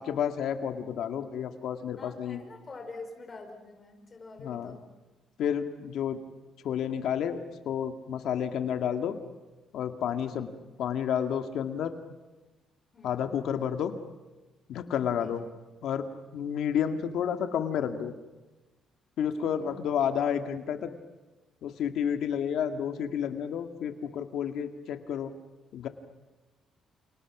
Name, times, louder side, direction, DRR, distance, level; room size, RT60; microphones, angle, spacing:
voice 1, 0.0-2.4 4.4-4.8 5.4-6.2 6.6-7.4 7.7-9.2 9.7-10.5 10.8-11.9 13.0-13.9 14.7-15.4 15.8-16.0 16.3-18.1 19.2-20.9 21.6-25.3 25.7-25.9, left 8 dB, 70° left, 7 dB, 1.9 m, -30 dB
voice 2, 2.0-4.8 10.3-10.4 12.9-13.2 15.2-15.3 16.9-17.0 19.4-19.8, left 3 dB, 25° left, 3 dB, 5.3 m, -46 dB
29.5 x 29.5 x 6.1 m, 1.1 s
cardioid pair, 150°, 0 cm